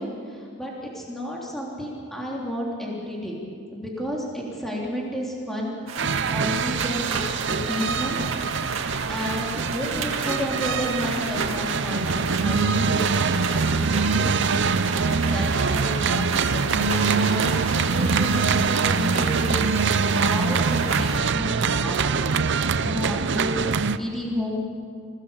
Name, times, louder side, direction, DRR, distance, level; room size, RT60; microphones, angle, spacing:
voice 1, 0.0-3.4 3.7-7.2 7.5-8.2 9.1-24.6, equal, ahead, -4 dB, 3.3 m, -32 dB
sound 1, 5.9-21.2, right 5 dB, 75° right, 2.1 m, -32 dB
sound 2, 6.0-24.0, right 5 dB, 55° right, 0.6 m, -24 dB
26.5 x 18.0 x 7.3 m, 2.3 s
head